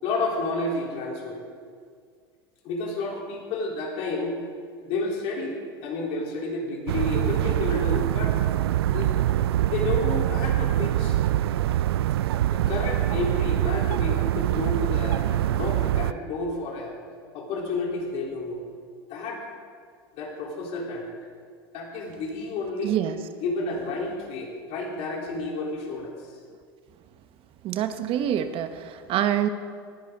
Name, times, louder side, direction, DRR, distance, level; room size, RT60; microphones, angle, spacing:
voice 1, 0.0-1.4 2.6-4.4 4.8-5.6 5.8-8.4 8.9-9.2 9.6-11.2 12.5-16.9 17.3-18.6 19.1-19.5 20.2-21.1 21.7-23.0 23.4-26.1, left 2 dB, 50° left, -2 dB, 3.8 m, -30 dB
sound 1, 6.9-16.1, right 13 dB, 75° right, 0.4 m, -24 dB
voice 2, 22.8-23.2 27.6-29.5, right 10 dB, 45° right, 9 dB, 1.0 m, -26 dB
19.5 x 13.5 x 3.9 m, 2.1 s
hypercardioid pair, 90°, 13 cm